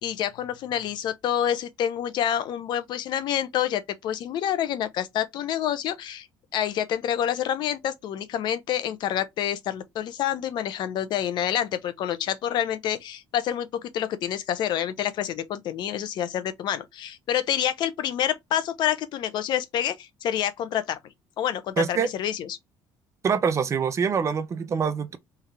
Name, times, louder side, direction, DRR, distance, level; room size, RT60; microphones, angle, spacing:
voice 1, 0.0-6.3 6.5-21.0 21.4-22.6, left 10 dB, 60° left, 0.9 m, -28 dB
voice 2, 21.8-22.1 23.2-25.2, right 6 dB, 35° right, 0.8 m, -25 dB
3.5 x 3.5 x 3.4 m
cardioid pair, 105°, 8 cm